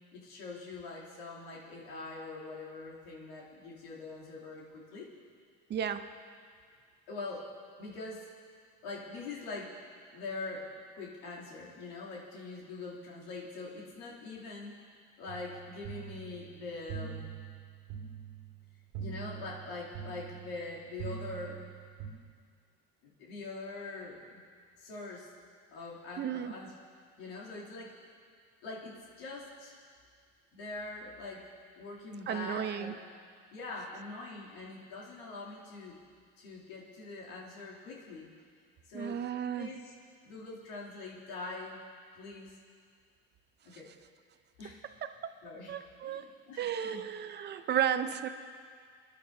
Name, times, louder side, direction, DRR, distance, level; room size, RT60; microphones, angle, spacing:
voice 1, 0.1-5.1 7.1-7.5 7.8-8.3 8.8-9.8 10.1-10.7 10.9-14.7 15.2-17.3 19.0-21.7 23.0-24.4 24.8-25.3 25.7-26.7 27.2-28.1 28.6-29.8 30.5-31.5 31.8-32.9 33.5-36.0 36.4-38.3 38.8-39.2 39.6-39.9 40.2-41.8 42.1-42.6 43.6-43.9 44.6-44.8 45.4-45.7 46.0-47.1, left 3 dB, 90° left, -5 dB, 2.8 m, -43 dB
voice 2, 5.7-6.1 26.2-26.5 32.3-33.0 38.9-39.7 45.7-46.3 46.6-48.3, right 9 dB, 35° right, 10 dB, 0.6 m, -33 dB
sound 1, 15.3-22.1, right 7 dB, 90° right, 2.3 m, -44 dB
26.5 x 11.0 x 2.7 m, 2.1 s
cardioid pair, 120°, 30 cm